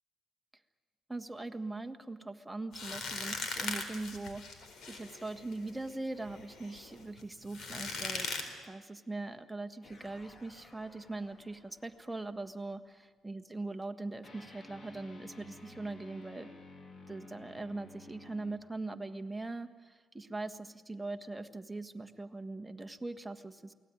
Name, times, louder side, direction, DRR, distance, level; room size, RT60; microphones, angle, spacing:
voice 1, 1.1-8.3 8.6-16.5 17.1-23.7, right 2 dB, 10° right, 6 dB, 1.5 m, -41 dB
sound 1, 2.7-8.4, left 4 dB, 65° left, 4.2 m, -40 dB
sound 2, 9.8-12.6 14.2-18.6, left 2 dB, 45° left, 2.8 m, -54 dB
28.5 x 19.0 x 9.8 m, 1.4 s
cardioid pair, 90°, 0 cm